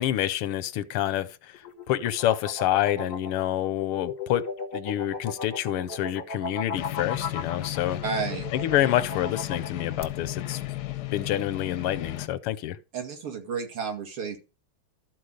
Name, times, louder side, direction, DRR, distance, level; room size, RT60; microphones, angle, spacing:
voice 1, 0.0-1.6 1.9-4.5 4.7-8.0 8.5-10.6 11.1-12.8, left 12 dB, 90° left, 1.7 m, -27 dB
sound 1, 1.5-10.0, left 4 dB, 45° left, 0.7 m, -36 dB
sound 2, 6.7-12.3, left 14 dB, 70° left, 1.0 m, -34 dB
voice 2, 8.0-8.5 12.9-14.4, right 5 dB, 80° right, 3.3 m, -31 dB
13.0 x 4.6 x 6.5 m
omnidirectional pair, 2.4 m